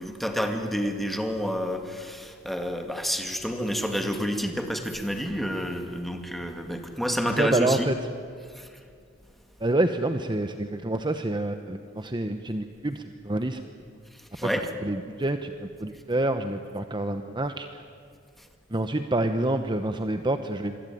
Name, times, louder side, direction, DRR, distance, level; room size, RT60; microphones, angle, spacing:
voice 1, 0.0-7.9 8.6-8.7 14.4-14.7, equal, ahead, 4 dB, 2.2 m, -29 dB
voice 2, 7.3-8.0 9.6-13.6 14.4-17.8 18.7-20.8, right 1 dB, 25° right, 8 dB, 0.9 m, -27 dB
26.0 x 24.0 x 9.4 m, 2.2 s
head